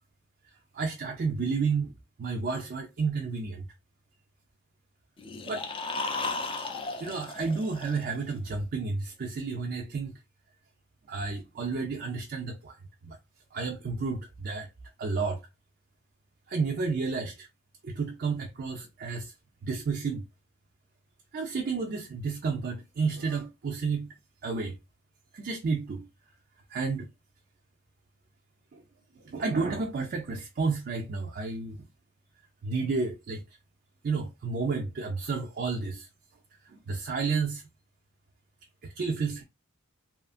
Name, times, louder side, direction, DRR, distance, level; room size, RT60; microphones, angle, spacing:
voice 1, 0.7-1.9 2.2-3.6 5.5-5.6 6.4-6.5 7.0-10.2 11.1-12.8 13.0-13.2 13.5-14.7 15.0-15.4 16.5-17.5 17.8-19.3 19.6-20.2 21.3-24.1 24.4-24.8 25.3-26.1 26.7-27.1 28.7-28.8 29.2-31.8 32.6-33.4 34.0-36.1 36.6-37.6 38.8-39.4, right 4 dB, 45° right, 0.4 m, -31 dB
sound 1, 5.2-8.3, left 3 dB, 25° left, 0.4 m, -35 dB
2.8 x 2.4 x 2.4 m
head